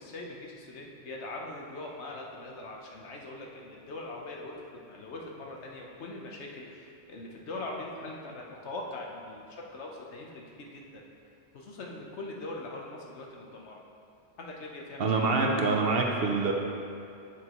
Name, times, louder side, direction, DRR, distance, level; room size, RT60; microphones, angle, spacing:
voice 1, 0.0-11.0 11.5-13.8 14.4-15.1, left 2 dB, 70° left, -1 dB, 1.2 m, -41 dB
voice 2, 15.0-16.5, right 3 dB, 60° right, 1 dB, 0.9 m, -25 dB
7.8 x 7.7 x 3.0 m, 2.6 s
omnidirectional pair, 1.2 m